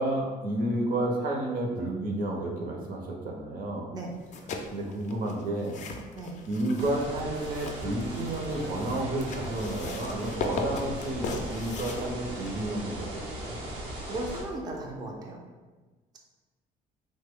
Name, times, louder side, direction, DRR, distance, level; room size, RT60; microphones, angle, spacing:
voice 1, 0.0-3.9 4.7-5.8 6.5-13.6, right 1 dB, 55° right, 0 dB, 0.7 m, -31 dB
sound 1, 4.2-12.8, left 3 dB, 45° left, 0.4 m, -38 dB
sound 2, 6.8-14.4, right 1 dB, 90° right, 0.9 m, -38 dB
voice 2, 14.0-15.4, right 1 dB, 25° right, 0 dB, 0.4 m, -36 dB
3.1 x 2.1 x 3.5 m, 1.3 s
cardioid pair, 110°, 17 cm